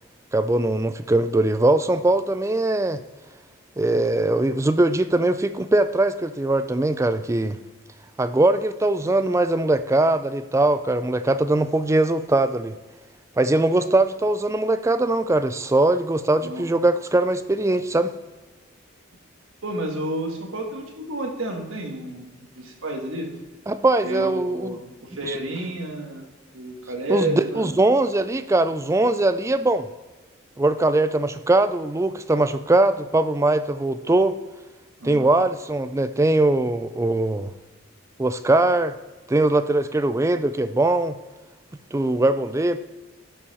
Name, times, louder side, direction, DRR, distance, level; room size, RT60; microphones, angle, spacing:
voice 1, 0.3-3.0 3.8-7.6 8.2-12.8 13.4-18.1 23.7-24.8 25.2-25.3 27.1-29.9 30.6-34.4 35.0-37.5 38.2-38.9 39.3-41.1 41.9-42.8, right 2 dB, 15° right, 12 dB, 0.3 m, -21 dB
voice 2, 19.6-23.3 24.0-26.3 26.5-27.7 35.0-35.3, right 1 dB, 75° right, 2 dB, 1.6 m, -31 dB
11.0 x 5.7 x 4.1 m, 1.2 s
head